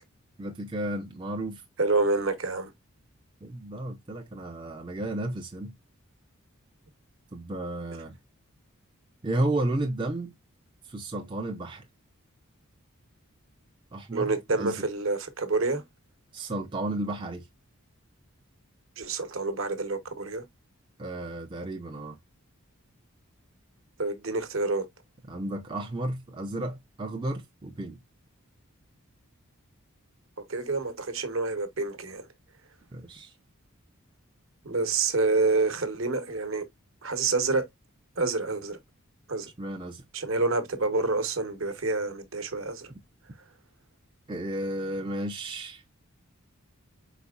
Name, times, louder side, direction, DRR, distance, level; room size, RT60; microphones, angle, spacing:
voice 1, 0.4-1.6 3.4-5.8 7.3-8.2 9.2-10.3 10.8-11.9 13.9-14.3 14.6-14.8 16.3-17.5 21.0-22.2 25.3-28.0 32.9-33.3 39.6-40.0 44.3-45.9, right 1 dB, 20° right, 0.4 m, -33 dB
voice 2, 1.8-2.7 14.1-15.8 19.0-20.5 24.0-24.8 30.4-32.3 34.6-36.7 37.0-37.7 38.2-38.8 39.3-39.5 40.1-42.9 43.4-43.5, right 3 dB, 65° right, 0.9 m, -28 dB
4.3 x 4.1 x 2.3 m
head